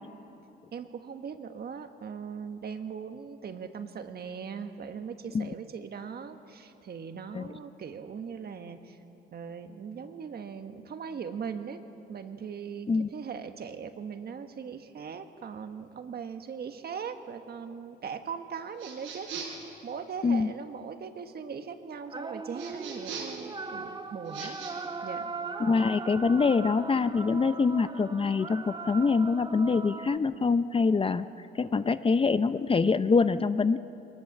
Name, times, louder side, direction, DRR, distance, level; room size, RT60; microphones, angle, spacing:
voice 1, 0.7-9.0 9.3-11.8 12.1-19.3 19.8-24.6 25.0-25.3, right 6 dB, 55° right, 7 dB, 1.5 m, -40 dB
sound 1, 18.8-19.7 22.6-23.4 24.2-24.7, right 5 dB, 90° right, 5.2 m, -40 dB
sound 2, 22.1-30.2, right 4 dB, 20° right, 0.9 m, -39 dB
voice 2, 25.6-31.3 31.6-33.8, left 4 dB, 25° left, 12 dB, 0.6 m, -25 dB
22.0 x 19.0 x 7.4 m, 3.0 s
cardioid pair, 90°, 20 cm